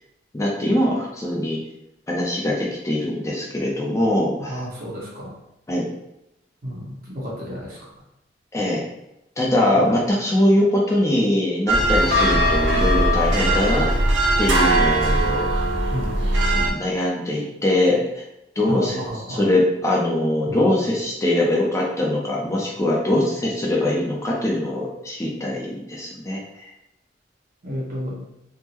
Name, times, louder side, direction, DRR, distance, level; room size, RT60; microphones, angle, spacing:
voice 1, 0.3-1.6 2.1-4.6 5.7-5.9 8.5-8.8 9.4-13.9 14.4-15.6 16.5-18.2 18.6-19.0 19.3-26.7, left 1 dB, 15° left, -3 dB, 0.4 m, -22 dB
voice 2, 4.4-5.3 6.6-7.9 9.7-10.0 15.9-16.3 18.7-19.5 20.4-20.7 27.6-28.2, equal, 55° right, -5 dB, 1.1 m, -31 dB
sound 1, 11.7-16.7, right 1 dB, 75° right, 0.6 m, -19 dB
3.5 x 2.1 x 2.9 m, 0.86 s
head